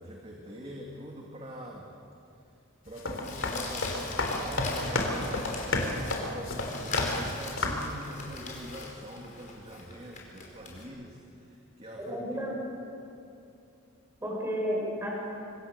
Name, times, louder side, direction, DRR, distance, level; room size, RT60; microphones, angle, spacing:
voice 1, 0.0-1.9 2.8-12.4, equal, 30° right, -1 dB, 2.4 m, -43 dB
sound 1, 2.9-7.3 7.6-7.9, left 2 dB, 70° left, 3.6 m, -31 dB
Crumpling crinkling, 3.2-10.8, left 3 dB, 40° left, 5.0 m, -40 dB
voice 2, 12.0-12.5 14.2-15.1, equal, 15° right, -3 dB, 7.5 m, -32 dB
26.5 x 25.0 x 6.9 m, 2.7 s
head